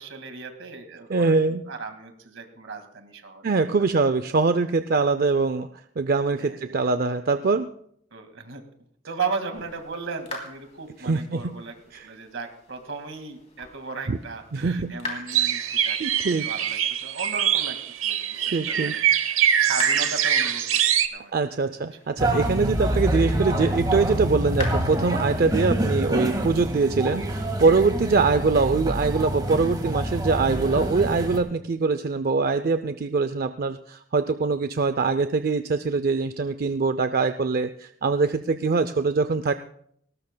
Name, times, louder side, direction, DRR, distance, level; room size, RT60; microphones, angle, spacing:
voice 1, 0.0-3.8 4.3-4.5 6.4-6.9 8.1-8.6 9.1-11.7 12.0-17.8 18.0-19.1 19.6-20.6 21.1-21.3, right 4 dB, 70° right, 6 dB, 2.0 m, -36 dB
voice 2, 1.1-1.6 3.4-5.7 6.0-7.7 11.0-11.5 11.9-12.1 14.1-14.2 14.5-15.2 16.0-16.5 18.5-19.0 21.3-39.5, right 4 dB, 45° right, 11 dB, 0.4 m, -23 dB
sound 1, 9.5-27.8, left 3 dB, 35° left, 3.1 m, -44 dB
sound 2, 15.3-21.1, right 9 dB, 90° right, 0.9 m, -23 dB
sound 3, 22.2-31.4, right 1 dB, 20° right, 1.8 m, -26 dB
19.5 x 18.5 x 2.2 m, 0.67 s
head